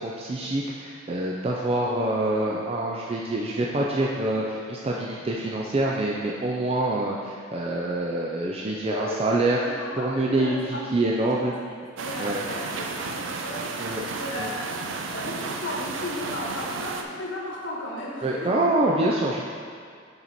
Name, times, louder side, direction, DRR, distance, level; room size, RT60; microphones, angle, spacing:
voice 1, 0.0-9.6 10.0-11.5 12.2-12.4 13.8-14.0 14.4-14.5 18.2-19.5, right 2 dB, 30° right, -3 dB, 0.5 m, -26 dB
voice 2, 8.9-9.2 9.6-11.5 12.0-13.7 14.1-14.7 15.1-18.6, left 1 dB, 75° left, -4 dB, 1.4 m, -35 dB
sound 1, 12.0-17.0, right 4 dB, 85° right, 0.5 m, -33 dB
6.6 x 4.5 x 4.2 m, 2.2 s
head